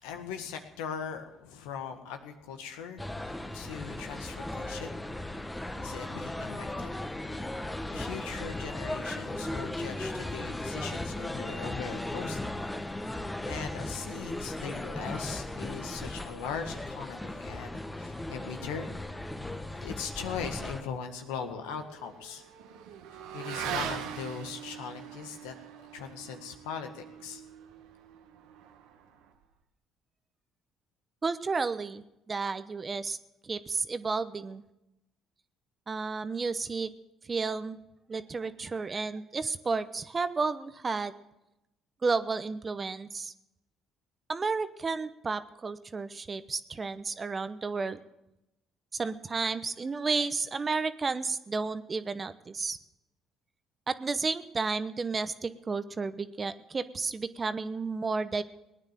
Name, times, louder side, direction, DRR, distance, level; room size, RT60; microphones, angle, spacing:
voice 1, 0.0-5.0 5.8-6.9 7.9-12.5 13.0-13.2 13.4-18.9 19.8-22.4 23.3-25.5 25.9-27.4, left 7 dB, 90° left, 5 dB, 1.7 m, -40 dB
sound 1, 3.0-20.8, left 1 dB, 10° left, 1.3 m, -37 dB
Motorcycle / Accelerating revving vroom, 20.7-29.4, right 8 dB, 80° right, 1.3 m, -42 dB
voice 2, 31.2-33.2 33.4-34.6 35.9-36.9 37.3-37.8 38.1-41.1 42.0-43.3 44.3-48.0 48.9-52.8 53.9-58.4, right 4 dB, 35° right, 13 dB, 0.9 m, -32 dB
18.5 x 9.8 x 7.6 m, 0.93 s
supercardioid pair, 70°, 0 cm